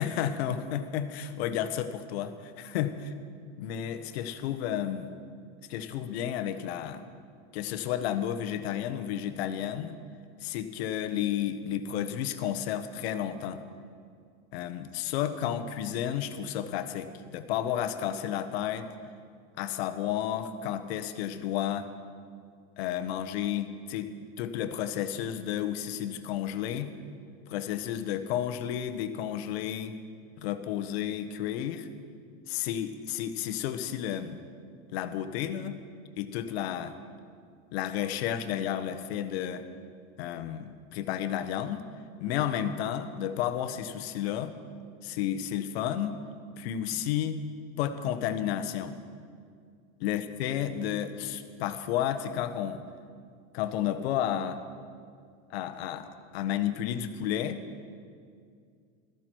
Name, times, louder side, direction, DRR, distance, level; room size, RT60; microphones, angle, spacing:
voice 1, 0.0-3.0 3.6-5.1 5.7-7.0 7.5-10.0 10.4-13.6 14.5-18.9 19.6-21.9 22.8-24.1 24.4-26.9 27.5-29.9 30.4-31.9 32.5-34.4 34.9-35.8 36.2-37.0 37.7-39.7 40.2-41.9 42.2-44.6 45.0-46.2 46.6-47.4 47.8-49.0 50.0-52.8 53.5-54.6 55.5-57.6, left 10 dB, 80° left, 9 dB, 1.1 m, -32 dB
16.5 x 14.0 x 4.6 m, 2.2 s
supercardioid pair, 145°, 31 cm